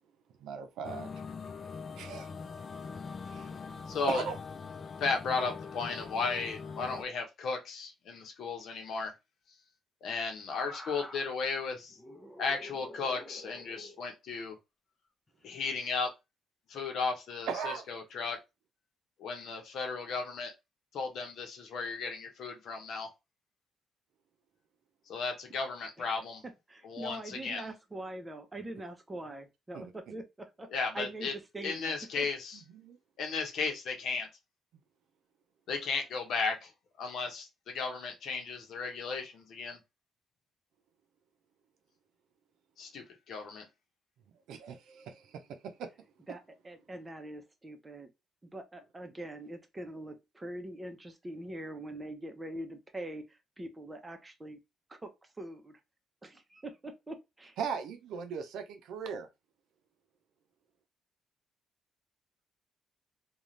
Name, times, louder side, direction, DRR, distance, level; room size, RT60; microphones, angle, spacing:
voice 1, 0.4-1.1 2.0-2.3 3.3-3.5 4.1-4.4 17.5-17.8 29.7-29.9 32.7-33.0 44.5-45.2 45.6-45.9 57.6-59.3, right 6 dB, 85° right, 0.6 m, -38 dB
sound 1, 0.8-7.0, left 5 dB, 45° left, 0.4 m, -43 dB
voice 2, 3.9-4.2 5.0-9.1 10.0-12.0 12.4-14.6 15.4-16.1 16.7-18.4 19.2-20.5 20.9-23.1 25.1-26.4 26.8-27.7 30.7-31.3 31.6-32.6 33.2-34.3 35.7-36.7 37.0-39.8 42.8-43.7, left 4 dB, 70° left, 0.9 m, -35 dB
sound 2, 10.5-11.4 11.9-14.1 15.3-15.5, left 1 dB, 25° left, 0.7 m, -48 dB
voice 3, 26.7-32.3 46.3-48.1 48.4-54.6 54.9-55.1 55.4-55.8 56.2-57.6, right 1 dB, 20° right, 0.7 m, -43 dB
2.5 x 2.3 x 3.1 m
cardioid pair, 90°, 0 cm